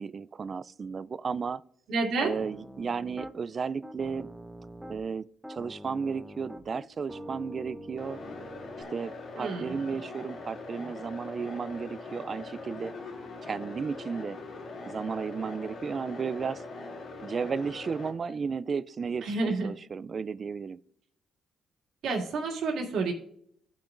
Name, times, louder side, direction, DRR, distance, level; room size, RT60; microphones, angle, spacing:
voice 1, 0.0-1.6 2.2-4.3 4.9-8.2 8.9-12.9 13.4-14.4 14.9-16.6 17.2-20.8, right 5 dB, 40° right, 0.3 m, -34 dB
voice 2, 1.9-2.4 9.3-10.0 19.2-19.7 22.0-23.1, right 3 dB, 75° right, 2.2 m, -30 dB
Piano, 2.4-3.3 3.8-5.1 5.4-8.8, equal, 5° right, 0.7 m, -45 dB
sound 1, 8.0-18.1, left 3 dB, 70° left, 2.5 m, -42 dB
16.0 x 5.9 x 2.5 m
cardioid pair, 90°, 0 cm